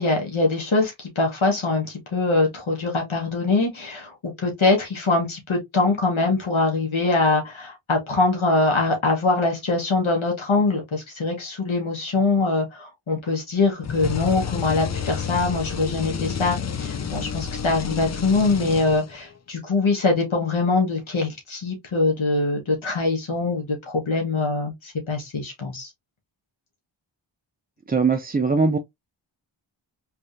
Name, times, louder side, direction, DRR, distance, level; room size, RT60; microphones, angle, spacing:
voice 1, 0.0-25.9, left 3 dB, 75° left, 1.4 m, -23 dB
sound 1, 13.8-19.3, left 6 dB, 35° left, 0.5 m, -30 dB
voice 2, 27.9-28.8, right 4 dB, 20° right, 0.4 m, -20 dB
3.4 x 3.3 x 2.6 m
wide cardioid pair, 45°, 48 cm